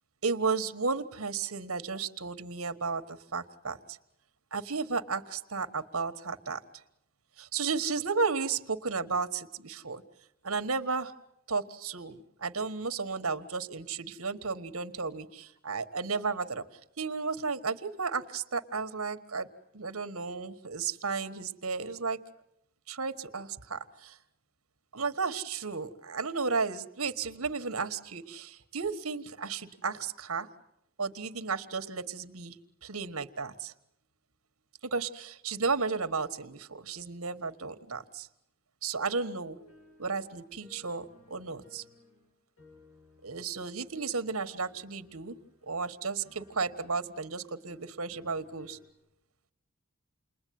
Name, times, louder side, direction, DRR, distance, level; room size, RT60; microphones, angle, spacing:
voice 1, 0.2-4.0 4.5-6.6 7.4-10.0 10.4-11.1 11.5-16.6 17.0-19.5 19.7-22.2 22.9-24.2 24.9-30.5 31.0-33.7 34.8-38.3 38.8-39.6 40.0-41.8 43.2-45.4 45.7-48.8, right 4 dB, 75° right, 10 dB, 1.6 m, -33 dB
sound 1, 39.5-48.9, left 2 dB, 80° left, 7.3 m, -61 dB
29.5 x 21.0 x 9.5 m, 0.80 s
head